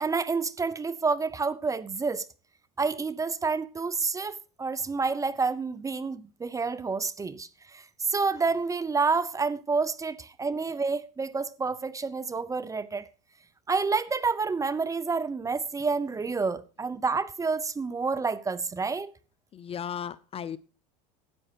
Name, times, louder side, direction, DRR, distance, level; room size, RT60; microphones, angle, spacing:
voice 1, 0.0-2.3 2.8-13.1 13.7-19.1, right 4 dB, 20° right, 0.8 m, -29 dB
voice 2, 19.5-20.6, left 8 dB, 30° left, 0.7 m, -35 dB
13.0 x 8.8 x 4.5 m
supercardioid pair, 95°, 18 cm